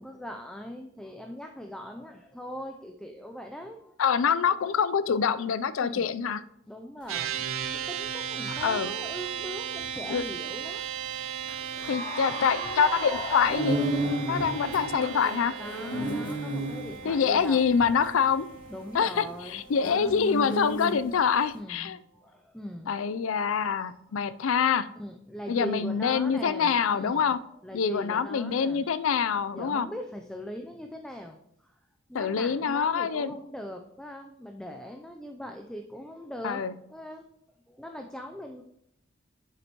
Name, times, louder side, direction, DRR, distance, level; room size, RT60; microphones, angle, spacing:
voice 1, 0.0-3.9 5.8-6.2 6.7-7.5 7.7-10.8 15.6-17.6 18.7-20.9 21.5-23.0 23.9-24.5 25.0-29.1 29.4-31.8 32.1-38.6, equal, 5° left, 4 dB, 0.4 m, -41 dB
voice 2, 4.0-6.4 8.6-8.9 10.1-10.2 11.9-13.8 14.2-15.5 17.0-18.5 18.9-22.0 22.9-24.9 25.5-27.4 27.7-29.9 32.1-33.4 36.4-36.7, left 6 dB, 70° left, 15 dB, 0.4 m, -25 dB
sound 1, 7.1-21.3, right 1 dB, 40° left, 2.1 m, -35 dB
sound 2, 7.1-20.6, right 8 dB, 75° right, 0.7 m, -37 dB
Cheering / Applause, 11.7-16.9, equal, 20° left, 1.5 m, -39 dB
8.0 x 7.6 x 3.0 m, 0.77 s
head